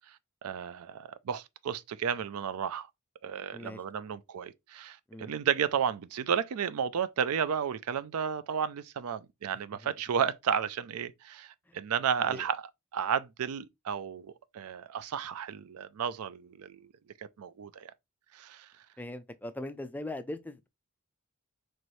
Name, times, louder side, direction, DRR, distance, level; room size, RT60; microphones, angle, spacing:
voice 1, 0.4-2.9 3.2-16.9 17.4-17.9 18.3-18.7, right 7 dB, 70° right, 0.4 m, -33 dB
voice 2, 3.5-3.8 5.1-5.3 9.8-9.9 11.7-11.8 12.2-12.4 19.0-20.7, left 1 dB, 10° left, 0.3 m, -40 dB
4.5 x 3.0 x 3.0 m
head